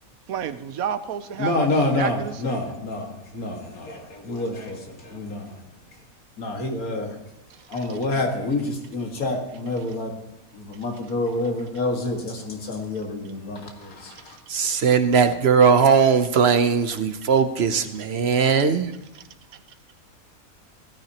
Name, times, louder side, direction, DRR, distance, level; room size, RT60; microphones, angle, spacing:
voice 1, 0.3-1.7 2.0-2.7, right 8 dB, 85° right, 11 dB, 1.2 m, -30 dB
voice 2, 1.4-5.6 6.4-7.2 7.7-10.1 10.5-14.4, left 2 dB, 85° left, 2 dB, 2.3 m, -28 dB
voice 3, 14.5-18.9, right 6 dB, 55° right, 10 dB, 0.9 m, -19 dB
16.5 x 13.0 x 2.9 m, 0.98 s
omnidirectional pair, 1.5 m